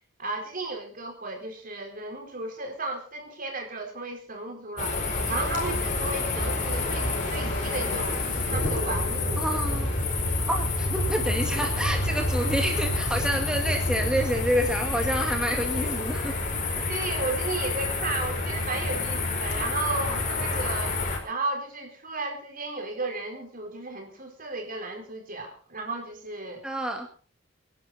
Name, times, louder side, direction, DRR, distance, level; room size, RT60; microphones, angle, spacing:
voice 1, 0.2-5.0 5.3-9.5 16.9-26.6, right 2 dB, 50° right, 3 dB, 4.1 m, -34 dB
sound 1, 4.8-21.2, left 2 dB, 40° left, 4.7 m, -28 dB
voice 2, 9.4-9.9 10.5-16.3 26.6-27.1, equal, 5° right, 2 dB, 1.9 m, -28 dB
24.5 x 11.0 x 4.1 m, 0.37 s
head